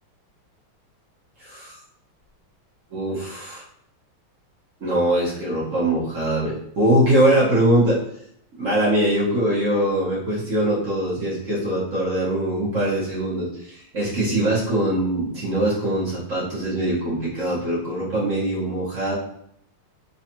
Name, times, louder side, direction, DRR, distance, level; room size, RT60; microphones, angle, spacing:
voice 1, 1.4-1.8 2.9-3.6 4.8-8.0 8.6-19.1, right 1 dB, 40° right, -8 dB, 1.6 m, -22 dB
4.0 x 3.2 x 2.9 m, 0.71 s
omnidirectional pair, 2.3 m